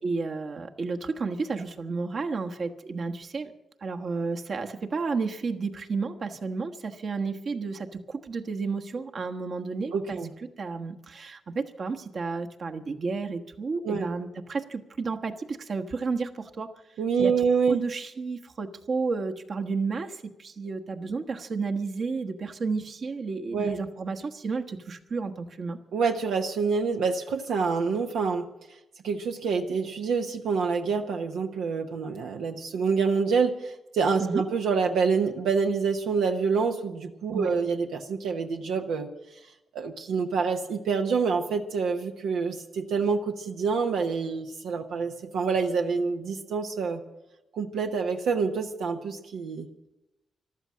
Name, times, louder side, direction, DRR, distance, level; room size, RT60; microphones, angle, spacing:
voice 1, 0.0-3.5 3.8-10.2 10.6-16.7 17.2-25.8 34.2-34.4 37.3-37.5, right 4 dB, 55° right, 5 dB, 1.3 m, -32 dB
voice 2, 9.9-10.3 13.8-14.1 17.0-17.8 23.5-23.8 25.9-28.5 29.0-39.1 39.7-47.0 47.5-49.7, right 5 dB, 85° right, 3 dB, 1.0 m, -27 dB
14.0 x 12.5 x 7.5 m, 0.93 s
cardioid pair, 65°, 0 cm